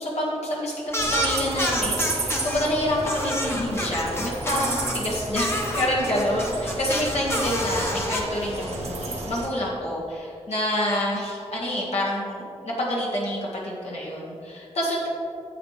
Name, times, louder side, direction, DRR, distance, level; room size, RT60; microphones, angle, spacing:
voice 1, 0.0-15.1, left 1 dB, 70° left, -5 dB, 1.7 m, -27 dB
sound 1, 0.9-2.7 3.0-5.0 5.3-8.2, equal, 20° left, 1.1 m, -28 dB
sound 2, 1.0-9.5, right 2 dB, 75° right, 1.4 m, -32 dB
9.6 x 8.1 x 3.3 m, 2.7 s
wide cardioid pair, 120°, 11 cm